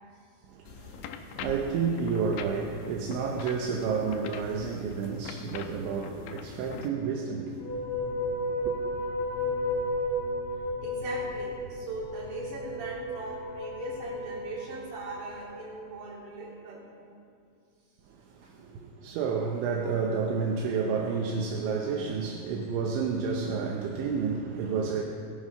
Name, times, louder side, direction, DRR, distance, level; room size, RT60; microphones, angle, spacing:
voice 1, 0.5-7.9 8.2-8.8 18.1-25.0, right 5 dB, 85° right, 3.3 m, -31 dB
sound 1, 0.7-6.9, left 7 dB, 85° left, 3.0 m, -43 dB
sound 2, 7.6-15.6, left 1 dB, 25° left, 2.6 m, -33 dB
voice 2, 10.8-16.9 18.4-18.5, right 3 dB, 60° right, 4.9 m, -40 dB
19.5 x 9.4 x 5.5 m
omnidirectional pair, 5.3 m